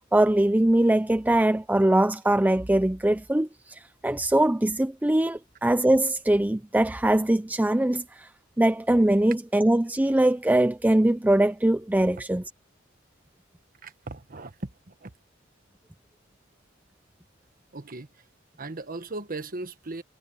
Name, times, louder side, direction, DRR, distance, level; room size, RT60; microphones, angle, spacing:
voice 1, 0.1-8.3 8.6-12.4, right 1 dB, 10° right, 0.5 m, -22 dB
voice 2, 13.8-15.1 17.7-18.1 18.6-20.0, right 2 dB, 45° right, 1.3 m, -37 dB
head